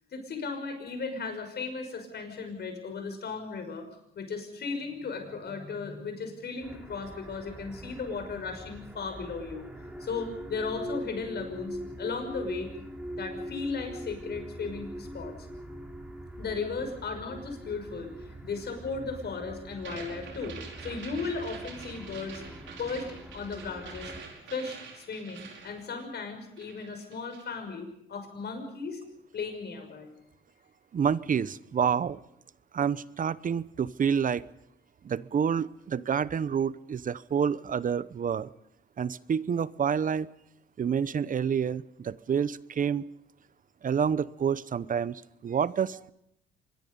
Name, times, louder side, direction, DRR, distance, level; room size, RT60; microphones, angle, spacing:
voice 1, 0.1-3.9 4.2-9.7 10.0-12.7 13.2-15.3 16.4-22.4 22.8-24.1 24.5-29.0 29.3-30.1, left 4 dB, 55° left, 6 dB, 5.9 m, -36 dB
sound 1, 6.6-24.2, equal, 5° right, 3.8 m, -43 dB
sound 2, 19.8-26.3 26.6-27.6, right 5 dB, 70° right, 5.4 m, -46 dB
voice 2, 30.9-32.2 32.7-34.4 35.0-38.5 39.0-40.3 40.8-43.0 43.8-46.1, right 7 dB, 45° right, 18 dB, 0.8 m, -28 dB
25.5 x 22.0 x 5.4 m, 0.79 s
cardioid pair, 90°, 20 cm